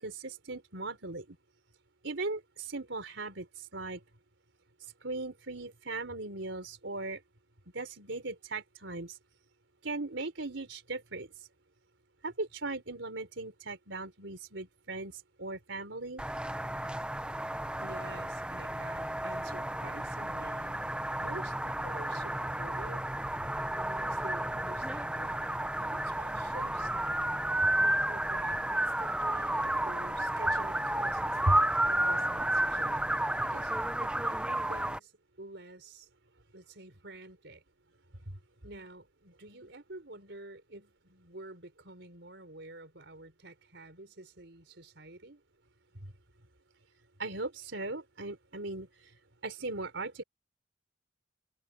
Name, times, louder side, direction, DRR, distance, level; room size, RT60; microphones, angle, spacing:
voice 1, 0.0-1.4 2.0-4.0 5.0-7.2 7.7-9.2 9.8-11.3 12.2-16.2 31.5-31.6 47.2-48.9 49.4-50.2, right 2 dB, 80° right, 3.7 m, -38 dB
sound 1, 16.2-35.0, right 1 dB, 5° right, 0.9 m, -32 dB
voice 2, 17.8-20.8 21.2-23.1 23.8-27.2 27.8-33.1 33.4-33.7 34.0-34.4 34.7-35.1 35.4-36.1 36.5-37.6 38.6-45.4, right 2 dB, 65° right, 5.3 m, -49 dB
head